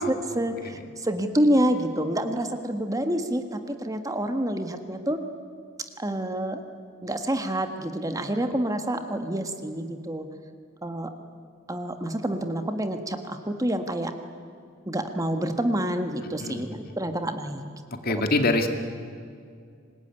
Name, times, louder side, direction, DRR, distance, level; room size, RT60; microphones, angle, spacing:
voice 1, 0.0-5.2 6.0-6.6 7.0-10.3 10.8-11.1 11.7-14.1 14.9-17.6 18.1-18.2, right 1 dB, 15° right, 7 dB, 1.5 m, -27 dB
voice 2, 18.0-18.7, left 2 dB, 50° left, 6 dB, 2.2 m, -24 dB
25.5 x 21.0 x 9.9 m, 2.2 s
head